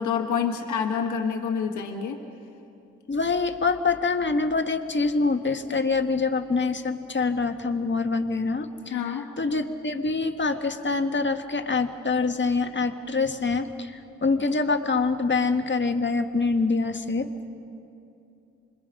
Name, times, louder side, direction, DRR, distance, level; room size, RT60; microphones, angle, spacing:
voice 1, 0.0-2.2 8.9-9.3, left 6 dB, 90° left, 2 dB, 1.5 m, -27 dB
voice 2, 3.1-8.7 9.4-13.9 14.2-17.3, left 4 dB, 40° left, 6 dB, 1.6 m, -25 dB
26.5 x 22.0 x 5.4 m, 2.8 s
supercardioid pair, 45°, 29 cm